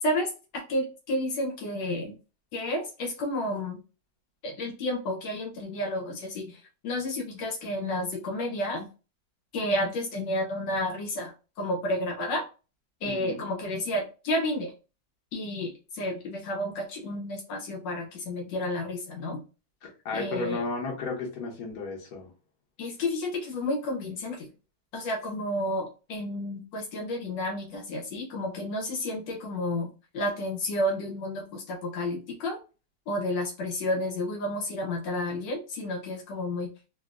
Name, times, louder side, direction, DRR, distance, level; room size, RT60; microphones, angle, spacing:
voice 1, 0.0-2.2 2.5-3.8 4.4-8.9 9.5-12.4 13.0-14.7 15.3-19.4 20.1-20.6 22.8-24.5 24.9-32.6 33.1-36.7, left 1 dB, 80° left, 1 dB, 1.4 m, -31 dB
voice 2, 13.0-13.5 19.8-22.3, left 3 dB, 60° left, 1 dB, 1.3 m, -34 dB
3.4 x 2.5 x 2.4 m, 0.33 s
omnidirectional pair, 2.0 m